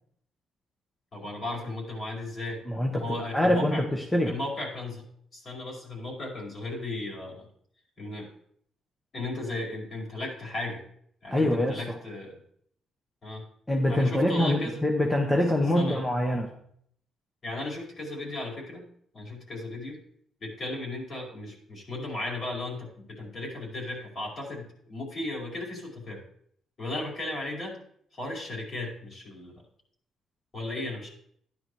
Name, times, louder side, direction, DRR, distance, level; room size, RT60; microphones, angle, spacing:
voice 1, 1.1-2.6 2.9-3.8 4.3-5.0 5.3-7.5 8.0-8.3 9.1-10.8 11.2-12.4 13.2-13.4 13.9-14.8 15.8-16.0 17.4-18.8 19.1-20.0 20.4-26.2 26.8-27.8 28.1-29.6 30.5-31.1, left 2 dB, 45° left, -1 dB, 5.1 m, -35 dB
voice 2, 2.7-4.3 11.3-12.0 13.7-16.5, left 1 dB, 10° left, 1 dB, 1.5 m, -25 dB
13.0 x 10.5 x 3.3 m, 0.66 s
cardioid pair, 90°, 0 cm